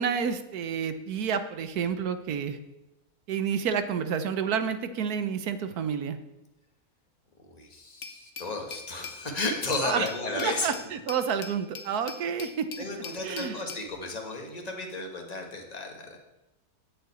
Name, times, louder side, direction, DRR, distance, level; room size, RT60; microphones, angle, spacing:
voice 1, 0.0-2.6 3.3-6.2 9.8-10.1 10.3-12.8 13.2-13.6, right 7 dB, 75° right, 10 dB, 1.4 m, -29 dB
voice 2, 7.4-10.7 11.9-12.0 12.8-16.2, left 2 dB, 25° left, 2 dB, 1.7 m, -33 dB
Glass, 8.0-13.9, left 5 dB, 55° left, 1.3 m, -43 dB
8.5 x 7.8 x 8.3 m, 0.97 s
omnidirectional pair, 1.6 m